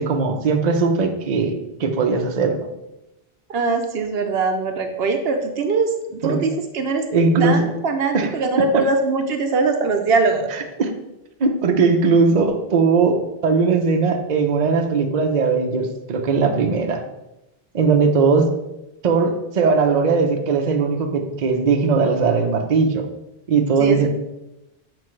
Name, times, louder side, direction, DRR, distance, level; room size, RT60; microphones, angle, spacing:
voice 1, 0.0-2.6 6.2-6.4 7.1-7.6 8.1-8.3 10.8-10.9 11.4-17.0 17.7-18.5 19.0-23.1 23.5-24.1, right 4 dB, 45° right, 4 dB, 0.7 m, -19 dB
voice 2, 3.5-7.1 7.4-10.5 23.8-24.1, right 4 dB, 70° right, 5 dB, 0.9 m, -21 dB
7.7 x 4.8 x 3.1 m, 0.92 s
omnidirectional pair, 1.1 m